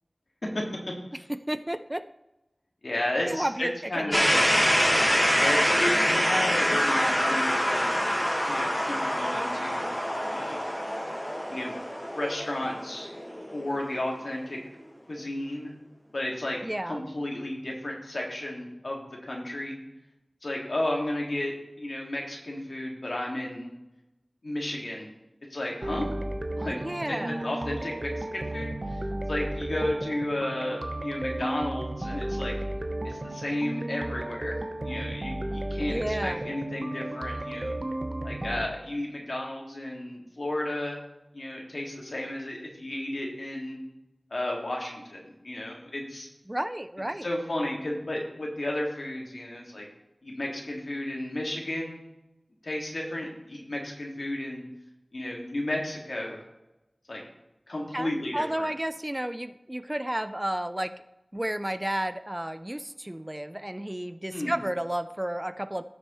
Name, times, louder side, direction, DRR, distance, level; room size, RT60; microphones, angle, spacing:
voice 1, 1.5-2.0 3.3-4.2 16.6-17.0 26.7-27.5 35.8-36.4 46.5-47.3 57.9-60.9 61.3-65.8, right 1 dB, 20° right, 12 dB, 0.5 m, -32 dB
voice 2, 2.8-4.5 5.4-7.9 8.4-10.0 10.3-10.7 11.5-11.8 12.1-13.1 13.5-14.6 15.1-15.7 16.1-19.8 20.4-23.7 24.4-25.1 25.5-26.1 26.6-26.8 27.1-29.0 29.3-32.5 33.0-37.7 38.2-41.0 41.3-43.8 44.3-46.3 47.2-49.9 50.2-52.0 52.6-54.6 55.1-56.4 57.1-57.2 57.7-58.7 64.3-64.6, left 1 dB, 80° left, -1 dB, 2.0 m, -33 dB
sound 1, 4.1-14.0, equal, 15° left, 1.6 m, -26 dB
sound 2, 25.8-38.6, right 1 dB, 45° right, 0.9 m, -34 dB
14.5 x 6.3 x 3.1 m, 0.95 s
wide cardioid pair, 55°, 0 cm